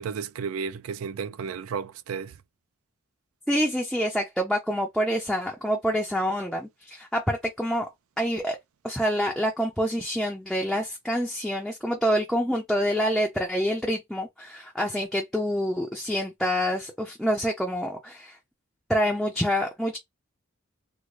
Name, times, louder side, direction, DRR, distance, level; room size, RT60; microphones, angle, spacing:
voice 1, 0.0-2.3, right 6 dB, 75° right, 0.4 m, -33 dB
voice 2, 3.5-7.9 8.2-8.6 8.8-18.4 18.9-20.0, equal, ahead, 0.4 m, -27 dB
3.7 x 2.0 x 3.1 m
head